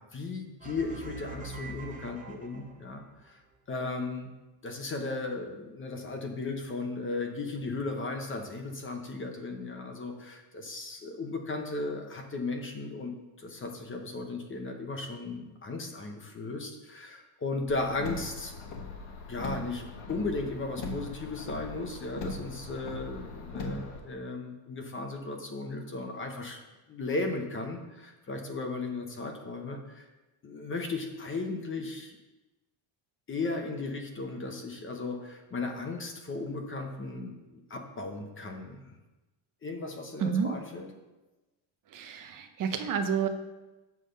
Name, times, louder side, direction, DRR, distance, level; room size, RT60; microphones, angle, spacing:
voice 1, 0.0-3.4 3.7-4.3 4.6-13.1 13.4-18.5 19.3-26.6 26.9-30.0 30.4-32.2 33.3-39.0 39.6-40.9, left 3 dB, 25° left, 3 dB, 0.9 m, -36 dB
sound 1, 0.6-3.0, right 3 dB, 15° right, 0.9 m, -44 dB
Car, 17.7-24.0, left 3 dB, 60° left, 1.3 m, -40 dB
voice 2, 40.2-40.5 41.9-43.3, right 7 dB, 45° right, 8 dB, 0.7 m, -29 dB
8.0 x 3.6 x 6.4 m, 1.1 s
cardioid pair, 165°, 48 cm